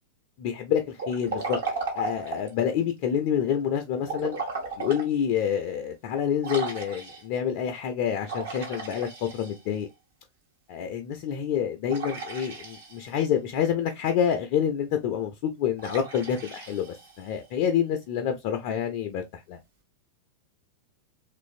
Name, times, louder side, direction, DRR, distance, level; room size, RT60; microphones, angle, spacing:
voice 1, 0.4-1.6 1.9-4.4 4.8-9.9 10.7-19.6, left 8 dB, 45° left, 0.4 m, -27 dB
Liquid, 0.9-2.6 4.0-5.1 5.6-5.7 6.4-7.4 8.2-9.8 11.9-13.2 15.8-17.4, right 4 dB, 60° right, 1.1 m, -35 dB
3.0 x 2.5 x 2.4 m
figure-of-eight pair, 90°, 0 cm